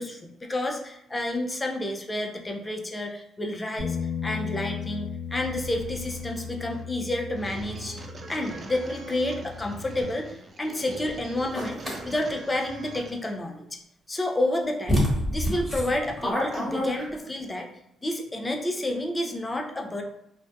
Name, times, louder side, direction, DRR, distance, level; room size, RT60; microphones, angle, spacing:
voice 1, 0.0-13.8 14.1-15.0 15.3-17.7 18.0-20.0, left 1 dB, 20° left, 2 dB, 0.5 m, -30 dB
Bass guitar, 3.8-10.0, left 6 dB, 85° left, 0.7 m, -36 dB
sound 1, 5.4-13.4, right 2 dB, 45° right, 0.4 m, -43 dB
sound 2, 11.5-12.0 14.2-14.3 14.9-17.4, equal, 5° right, 1.2 m, -27 dB
2.6 x 2.1 x 2.2 m, 0.79 s
supercardioid pair, 60°, 0 cm